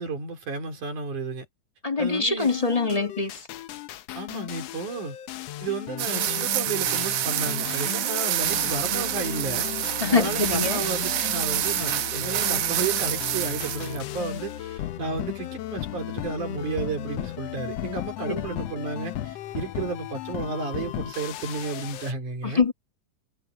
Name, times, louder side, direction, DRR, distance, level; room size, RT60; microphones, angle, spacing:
voice 1, 0.0-1.5 2.0-2.5 4.2-5.2 5.6-9.7 10.1-22.6, right 3 dB, 85° right, 5.7 m, -32 dB
voice 2, 1.8-3.4 10.0-10.8 11.2-11.3 18.3-18.4 22.4-22.7, left 4 dB, 15° left, 1.3 m, -24 dB
sound 1, 2.4-22.1, left 13 dB, 70° left, 1.7 m, -35 dB
sound 2, 6.0-14.0, right 12 dB, 70° right, 1.7 m, -27 dB
omnidirectional pair, 3.4 m